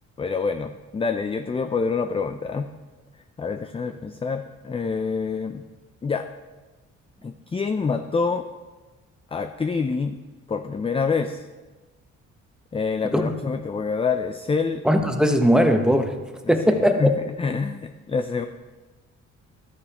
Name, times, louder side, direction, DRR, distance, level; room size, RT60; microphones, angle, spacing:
voice 1, 0.2-2.7 3.4-5.6 6.0-6.2 7.2-8.4 9.3-10.2 10.5-11.4 12.7-14.9 16.5-18.5, left 5 dB, 20° left, 8 dB, 0.4 m, -26 dB
voice 2, 14.8-16.1 16.5-17.1, equal, ahead, 5 dB, 1.0 m, -19 dB
12.0 x 9.9 x 3.0 m, 1.2 s
cardioid pair, 90°, 30 cm